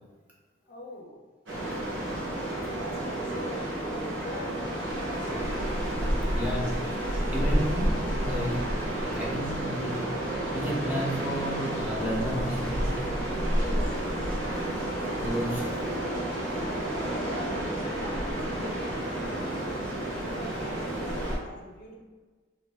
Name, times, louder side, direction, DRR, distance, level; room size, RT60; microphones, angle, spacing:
voice 1, 0.7-1.2 2.6-5.5 13.6-14.2 15.7-19.8 20.1-22.0, left 1 dB, 45° left, -1 dB, 0.5 m, -43 dB
sound 1, 1.5-21.4, right 1 dB, 80° right, 0.9 m, -30 dB
voice 2, 6.3-6.7 7.3-8.5 9.2-9.9 10.5-12.9 15.2-15.6, equal, 5° right, -5 dB, 0.4 m, -32 dB
sound 2, 7.4-17.4, right 1 dB, 65° right, 0.4 m, -46 dB
2.4 x 2.3 x 3.4 m, 1.3 s
head